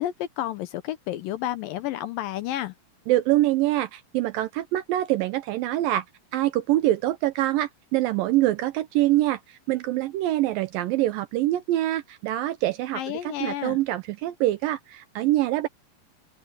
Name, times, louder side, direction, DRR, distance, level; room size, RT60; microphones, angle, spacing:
voice 1, 0.0-2.7 12.9-13.8, left 13 dB, 75° left, 2.2 m, -31 dB
voice 2, 3.1-6.0 6.3-15.7, right 15 dB, 80° right, 2.1 m, -25 dB
open air
omnidirectional pair, 4.6 m